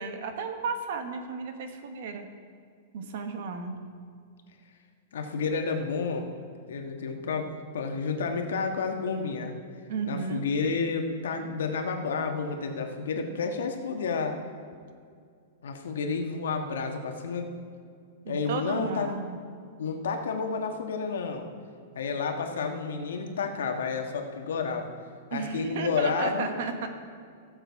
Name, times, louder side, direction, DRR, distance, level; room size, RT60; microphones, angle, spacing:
voice 1, 0.0-2.2 2.9-3.8 9.9-10.5 18.2-19.4 25.3-26.9, right 5 dB, 50° right, 6 dB, 1.2 m, -33 dB
voice 2, 5.1-6.3 6.7-9.6 10.1-14.4 15.6-17.5 18.3-19.1 19.8-21.5 21.9-24.9 25.3-26.5, left 5 dB, 90° left, 4 dB, 1.5 m, -30 dB
15.5 x 7.7 x 4.7 m, 2.3 s
supercardioid pair, 175°, 0 cm